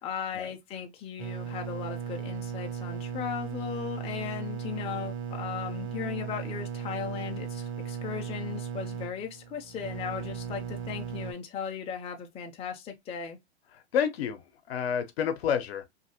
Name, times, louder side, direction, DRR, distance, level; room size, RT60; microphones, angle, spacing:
voice 1, 0.0-13.4, left 8 dB, 20° left, 0.5 m, -37 dB
sound 1, 1.2-11.3, right 8 dB, 70° right, 1.2 m, -37 dB
voice 2, 13.7-15.8, left 8 dB, 65° left, 0.8 m, -29 dB
2.8 x 2.6 x 2.8 m
hypercardioid pair, 110°, 33 cm